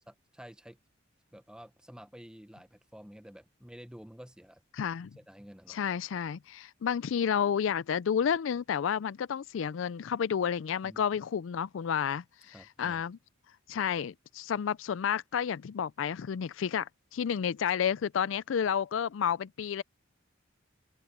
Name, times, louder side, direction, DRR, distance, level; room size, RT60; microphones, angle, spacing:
voice 1, 0.1-0.8 1.3-4.6 5.2-5.8 10.8-11.0 12.5-13.0, equal, 5° right, 1.0 m, -50 dB
voice 2, 4.7-5.1 5.7-13.2 13.7-19.8, left 8 dB, 70° left, 0.4 m, -31 dB
open air
head